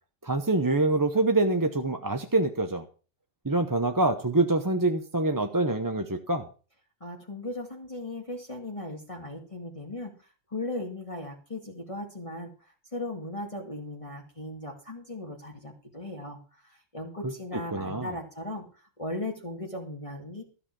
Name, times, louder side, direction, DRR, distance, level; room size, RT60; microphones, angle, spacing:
voice 1, 0.2-2.9 3.4-6.5 17.2-18.1, right 2 dB, 20° right, 7 dB, 0.8 m, -26 dB
voice 2, 7.0-10.1 10.5-12.5 12.9-16.4 16.9-18.6 19.0-20.4, left 1 dB, 25° left, 0 dB, 2.1 m, -37 dB
13.0 x 7.1 x 6.0 m, 0.37 s
omnidirectional pair, 1.3 m